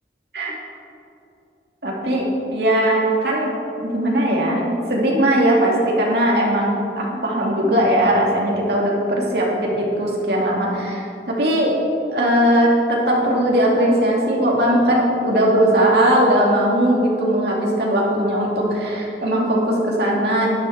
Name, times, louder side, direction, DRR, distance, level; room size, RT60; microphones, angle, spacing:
voice 1, 1.8-3.5 3.8-11.7 12.1-20.5, right 1 dB, 70° right, -3 dB, 2.4 m, -19 dB
10.5 x 9.9 x 4.6 m, 2.8 s
head